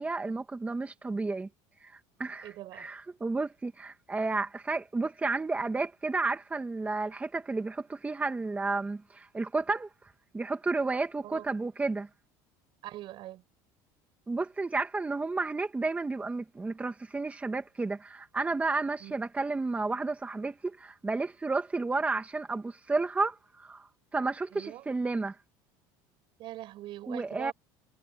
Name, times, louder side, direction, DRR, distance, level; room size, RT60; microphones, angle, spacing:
voice 1, 0.0-1.5 1.8-12.1 14.3-25.4 27.1-27.5, right 3 dB, 15° right, 1.8 m, -32 dB
voice 2, 2.4-2.9 11.2-11.5 12.8-13.4 19.0-19.2 24.5-24.9 26.4-27.5, right 15 dB, 55° right, 6.0 m, -43 dB
supercardioid pair, 115°, 10 cm